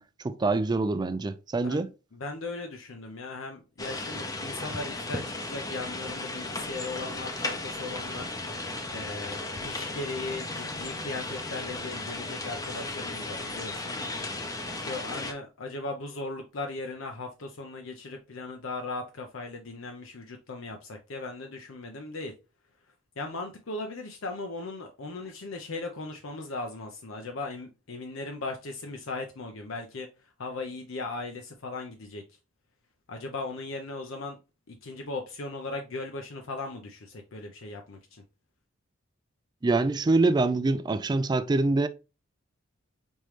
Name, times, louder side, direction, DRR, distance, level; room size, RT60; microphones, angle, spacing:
voice 1, 0.2-1.9 39.6-41.9, right 3 dB, 20° right, 0.3 m, -25 dB
voice 2, 2.1-8.3 8.9-13.9 14.7-22.3 23.2-30.1 30.4-32.2 33.1-34.4 34.7-38.2, left 3 dB, 70° left, 0.7 m, -38 dB
sound 1, 3.8-15.3, left 2 dB, 20° left, 0.6 m, -35 dB
5.3 x 3.1 x 3.1 m
head